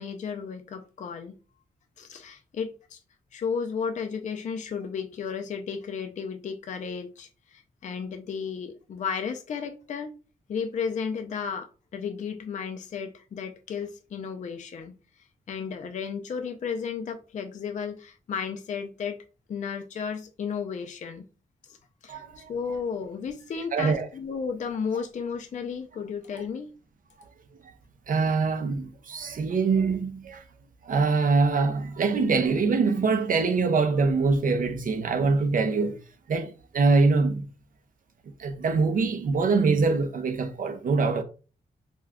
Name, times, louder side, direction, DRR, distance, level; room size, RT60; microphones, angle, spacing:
voice 1, 0.0-1.3 2.0-3.0 3.3-10.1 10.5-19.2 19.5-21.3 21.6-21.8 22.0-26.7, left 6 dB, 45° left, 0.4 m, -33 dB
voice 2, 22.1-22.5 23.7-24.1 28.1-30.4 30.8-36.0 36.3-37.5 38.4-41.2, right 4 dB, 55° right, 0.4 m, -24 dB
2.3 x 2.2 x 3.4 m
cardioid pair, 65°, 17 cm